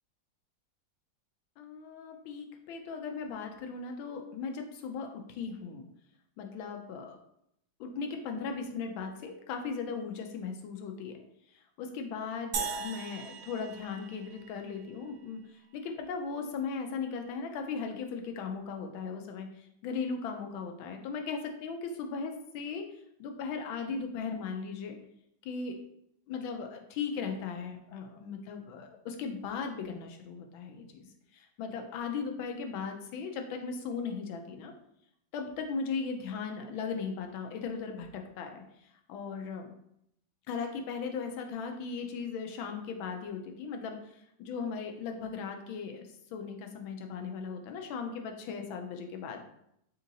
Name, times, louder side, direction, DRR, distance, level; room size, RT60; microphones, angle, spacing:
voice 1, 1.6-5.9 6.4-7.2 7.8-11.1 11.8-15.4 15.7-22.8 23.2-25.0 25.4-25.8 26.3-31.1 31.3-34.7 35.3-38.6 39.1-39.7 40.5-44.0 44.4-49.5, left 5 dB, 90° left, 4 dB, 1.4 m, -37 dB
sound 1, 12.5-15.0, right 6 dB, 75° right, 1.1 m, -38 dB
3.6 x 2.8 x 3.8 m, 0.75 s
omnidirectional pair, 2.1 m